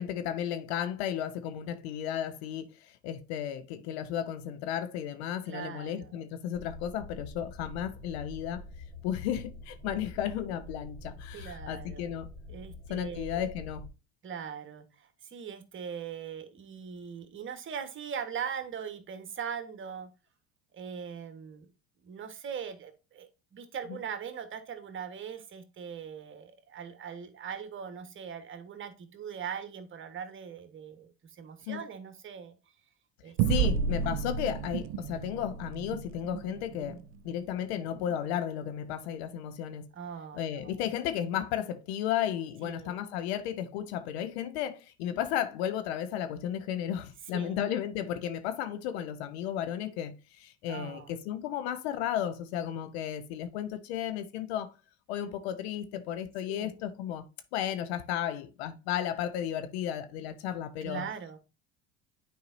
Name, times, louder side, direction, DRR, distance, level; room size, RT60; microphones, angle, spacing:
voice 1, 0.0-8.6 9.0-12.3 12.9-13.9 23.9-24.0 31.7-31.8 33.5-39.9 40.3-54.7 55.1-57.2 57.5-61.1, left 10 dB, 70° left, 1.0 m, -34 dB
voice 2, 5.5-6.1 11.3-12.1 12.5-13.4 14.2-20.1 20.7-21.7 22.0-32.6 33.2-33.7 36.8-37.0 39.9-40.8 42.6-42.9 47.3-47.6 50.7-51.2 56.5-56.7 60.8-61.4, right 7 dB, 35° right, 1.5 m, -41 dB
sound 1, 6.5-13.9, left 2 dB, 10° left, 2.2 m, -46 dB
sound 2, 33.4-38.2, right 7 dB, 65° right, 0.7 m, -32 dB
9.3 x 4.7 x 2.7 m
hypercardioid pair, 70°, 33 cm